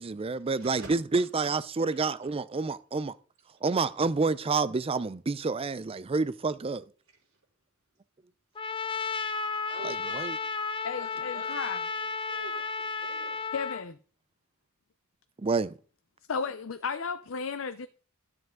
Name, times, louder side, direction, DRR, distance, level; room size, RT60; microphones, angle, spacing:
voice 1, 0.0-3.1 3.6-6.8 9.8-10.4 15.4-15.7, right 4 dB, 30° right, 0.4 m, -29 dB
voice 2, 0.5-0.9 1.9-2.0 9.6-10.3 10.9-13.5, right 2 dB, 80° right, 4.9 m, -46 dB
Trumpet, 8.6-13.8, left 4 dB, 25° left, 0.6 m, -33 dB
voice 3, 10.8-11.8 13.5-14.0 16.3-17.9, left 5 dB, 75° left, 0.6 m, -34 dB
13.0 x 7.8 x 3.8 m
head